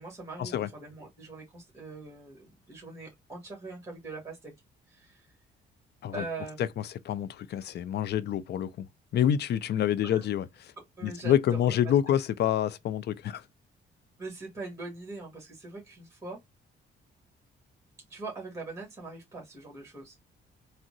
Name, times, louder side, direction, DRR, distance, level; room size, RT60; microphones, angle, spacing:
voice 1, 0.0-4.5 4.9-5.3 6.1-6.7 10.0-10.3 11.0-12.2 14.2-16.4 18.1-20.2, right 3 dB, 15° right, 1.5 m, -42 dB
voice 2, 7.0-8.9 9.1-10.5 11.0-13.4, left 10 dB, 55° left, 0.4 m, -27 dB
3.5 x 2.1 x 2.6 m
cardioid pair, 90°, 20 cm